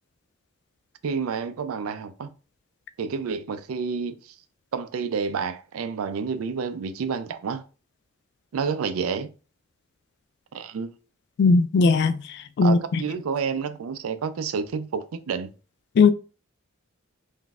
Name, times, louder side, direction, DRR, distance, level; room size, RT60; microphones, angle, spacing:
voice 1, 1.0-2.3 3.0-4.1 4.7-7.6 8.5-9.3 10.5-10.9 12.6-15.5, right 5 dB, 85° right, 0.4 m, -29 dB
voice 2, 11.4-12.2 12.6-13.0 16.0-16.1, left 4 dB, 55° left, 0.3 m, -18 dB
3.8 x 2.6 x 2.3 m
head